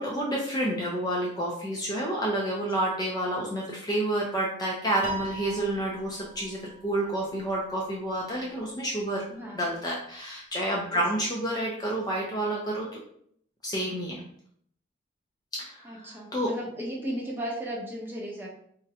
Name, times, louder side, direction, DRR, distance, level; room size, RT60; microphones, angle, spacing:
voice 1, 0.0-9.2 9.5-13.0 13.6-14.2 15.6-16.5, right 1 dB, 20° left, -3 dB, 0.4 m, -29 dB
Piano, 5.0-7.5, right 2 dB, 40° right, 0.4 m, -39 dB
voice 2, 9.3-9.6 10.9-11.0 15.8-18.5, equal, 10° right, -3 dB, 0.7 m, -35 dB
3.7 x 2.1 x 2.7 m, 0.64 s
head